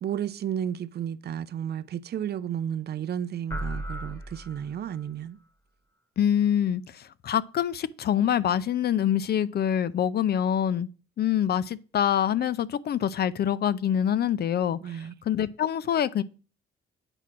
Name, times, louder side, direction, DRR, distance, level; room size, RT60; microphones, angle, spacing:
voice 1, 0.0-5.4 14.8-15.2, right 9 dB, 55° right, 0.5 m, -32 dB
sound 1, 3.5-5.1, right 1 dB, 15° left, 1.4 m, -36 dB
voice 2, 6.2-10.9 11.2-14.9 15.3-16.2, left 9 dB, 55° left, 0.6 m, -25 dB
8.8 x 4.4 x 6.1 m
cardioid pair, 90°, 20 cm